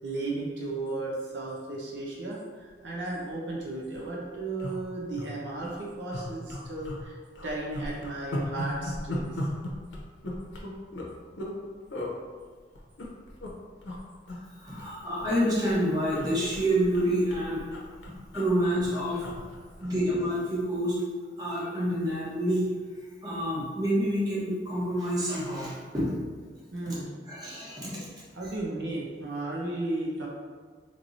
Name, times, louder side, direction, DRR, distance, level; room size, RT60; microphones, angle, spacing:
voice 1, 0.0-7.2 7.4-9.4 26.7-27.1 28.3-30.3, right 2 dB, 80° right, -3 dB, 0.7 m, -34 dB
sound 1, 3.3-3.4 3.6-3.7 3.9-4.1 4.6-5.3 5.6-5.8 6.1-7.0 7.3-11.6 11.9-12.1 12.7-13.5 13.8-14.0 14.3-15.4 15.7-20.2 20.6-20.8, left 1 dB, 90° left, 0.7 m, -37 dB
voice 2, 14.6-17.6 18.3-19.2 19.8-20.9 21.4-22.6 23.2-26.1 26.9-27.0 27.3-27.9, equal, 20° right, -8 dB, 1.1 m, -28 dB
4.4 x 3.0 x 2.6 m, 1.5 s
head